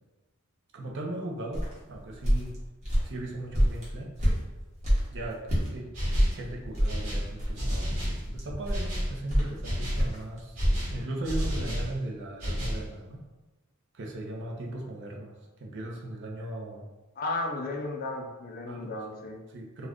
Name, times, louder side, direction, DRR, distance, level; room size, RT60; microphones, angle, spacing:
voice 1, 0.7-2.6 3.0-4.3 5.1-5.4 5.7-5.9 6.3-10.6 10.9-13.2 13.9-16.8 18.7-18.9 19.2-19.9, right 1 dB, 55° right, 0 dB, 0.5 m, -38 dB
sound 1, 1.5-5.7 6.1-10.8, equal, 30° right, 0.9 m, -27 dB
sound 2, 5.9-6.4 6.9-8.2 8.7-9.1 9.6-10.1 10.5-11.9 12.4-12.9, equal, 75° right, 1.1 m, -31 dB
voice 2, 17.2-19.4, left 2 dB, 40° left, 1 dB, 0.4 m, -34 dB
2.4 x 2.2 x 3.4 m, 1.1 s
head